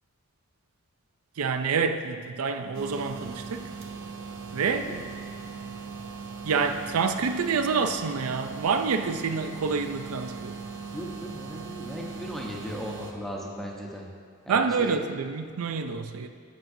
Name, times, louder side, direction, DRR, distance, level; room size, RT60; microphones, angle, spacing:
voice 1, 1.4-3.7 4.5-5.0 6.4-10.5 14.5-16.3, right 5 dB, 85° right, 8 dB, 0.5 m, -27 dB
sound 1, 2.7-13.1, right 5 dB, 65° right, 0.8 m, -39 dB
voice 2, 10.9-14.1 14.5-15.0, equal, ahead, -2 dB, 0.9 m, -37 dB
10.5 x 7.8 x 2.7 m, 2.1 s
head